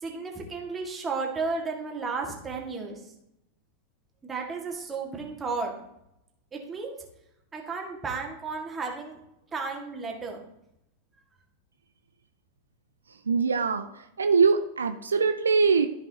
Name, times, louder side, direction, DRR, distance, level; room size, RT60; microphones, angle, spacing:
voice 1, 0.0-3.1 4.2-5.7 6.5-7.0 7.5-9.2 9.5-10.4, right 4 dB, 20° right, 0 dB, 1.8 m, -33 dB
voice 2, 13.3-13.9 14.2-15.9, right 5 dB, 70° right, 7 dB, 0.5 m, -22 dB
13.0 x 5.4 x 2.9 m, 0.83 s
figure-of-eight pair, 90°, 0 cm